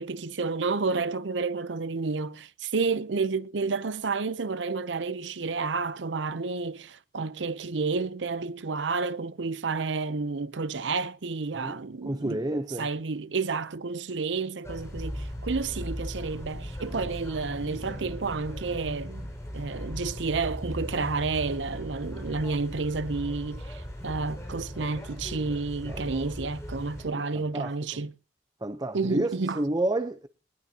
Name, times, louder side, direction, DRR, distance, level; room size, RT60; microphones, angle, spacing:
voice 1, 0.0-12.4 12.8-19.3 19.5-28.1 28.9-29.6, right 4 dB, 80° right, 0.7 m, -30 dB
voice 2, 11.6-12.9 25.9-26.0 27.1-28.0 28.6-30.3, right 1 dB, 20° right, 0.8 m, -31 dB
sound 1, 14.6-27.0, equal, 15° left, 5.6 m, -38 dB
20.0 x 19.5 x 2.9 m
head